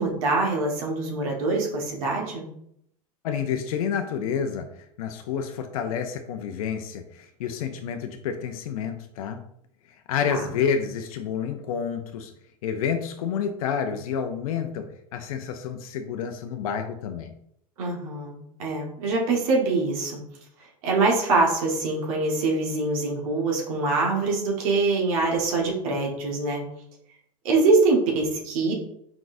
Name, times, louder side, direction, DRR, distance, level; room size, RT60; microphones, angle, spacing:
voice 1, 0.0-2.5 10.3-10.4 17.8-20.2 20.8-26.6 27.4-28.7, right 3 dB, 75° right, -1 dB, 1.4 m, -24 dB
voice 2, 3.2-9.4 10.1-12.3 12.6-17.3, left 7 dB, 75° left, 6 dB, 0.5 m, -29 dB
4.7 x 3.9 x 2.5 m, 0.72 s
hypercardioid pair, 95°, 18 cm